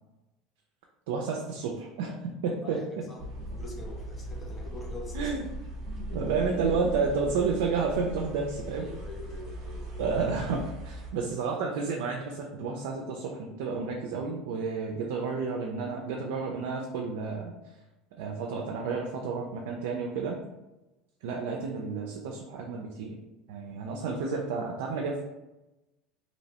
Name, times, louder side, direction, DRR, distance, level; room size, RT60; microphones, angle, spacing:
voice 1, 1.1-2.8 5.1-5.5 5.9-8.9 10.0-17.5 18.2-20.4 21.2-23.2 23.5-25.3, right 4 dB, 80° right, 0 dB, 0.3 m, -31 dB
voice 2, 2.6-5.3 5.9-6.2 8.8-10.1, left 2 dB, 25° left, 1 dB, 0.6 m, -44 dB
sound 1, 3.2-11.1, right 1 dB, 50° right, 0.8 m, -39 dB
2.6 x 2.0 x 2.8 m, 1.0 s
supercardioid pair, 120°, 0 cm